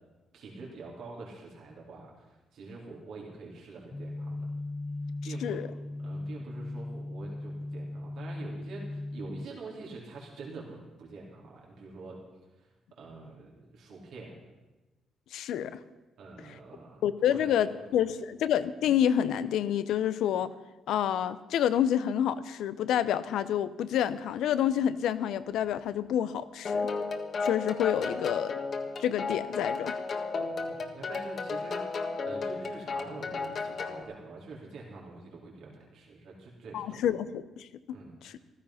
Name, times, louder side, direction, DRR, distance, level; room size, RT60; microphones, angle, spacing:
voice 1, 0.3-4.4 5.2-5.6 6.0-12.2 12.6-12.7 13.0-14.4 16.2-17.0 17.3-17.6 30.4-37.2 37.9-38.1, right 3 dB, 75° right, -3 dB, 3.5 m, -46 dB
sound 1, 3.9-9.5, left 2 dB, 20° left, 0.7 m, -38 dB
voice 2, 15.3-15.8 17.0-20.5 20.9-26.9 27.4-28.5 29.0-30.0 36.7-38.0 38.2-38.4, left 10 dB, 80° left, 14 dB, 0.7 m, -28 dB
sound 2, 26.6-34.0, left 4 dB, 50° left, 1.6 m, -33 dB
15.0 x 13.0 x 5.7 m, 1.1 s
cardioid pair, 90°, 0 cm